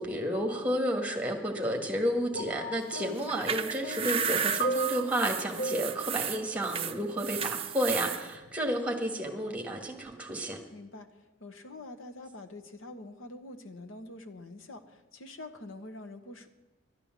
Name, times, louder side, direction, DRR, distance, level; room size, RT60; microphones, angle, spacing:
voice 1, 0.0-10.6, equal, 5° right, 3 dB, 1.5 m, -31 dB
sound 1, 2.3-7.5 8.4-8.5, right 3 dB, 55° left, 1.0 m, -36 dB
sound 2, 3.2-8.2, right 8 dB, 30° right, 0.5 m, -33 dB
voice 2, 5.6-5.9 10.7-11.1 11.4-16.5, left 2 dB, 75° left, 7 dB, 1.1 m, -45 dB
11.5 x 9.8 x 7.4 m, 1.1 s
head